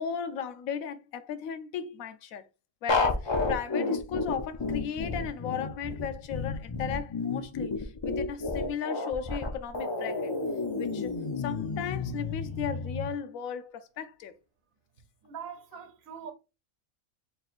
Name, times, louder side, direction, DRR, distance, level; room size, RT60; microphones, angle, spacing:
voice 1, 0.0-2.4 2.8-10.4 10.8-14.3, left 7 dB, 85° left, 1.0 m, -36 dB
sound 1, 2.9-13.1, left 3 dB, 35° left, 0.4 m, -31 dB
voice 2, 15.2-16.3, right 7 dB, 75° right, 1.2 m, -42 dB
4.2 x 3.3 x 2.4 m
omnidirectional pair, 1.4 m